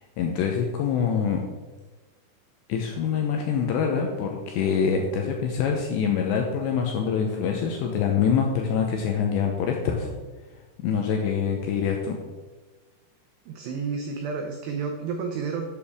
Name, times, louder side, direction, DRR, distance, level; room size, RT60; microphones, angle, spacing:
voice 1, 0.2-1.4 2.7-10.1 10.8-12.2, left 6 dB, 80° left, 2 dB, 2.6 m, -25 dB
voice 2, 13.5-15.7, right 5 dB, 85° right, 3 dB, 2.4 m, -30 dB
11.5 x 8.8 x 3.6 m, 1.3 s
omnidirectional pair, 6.0 m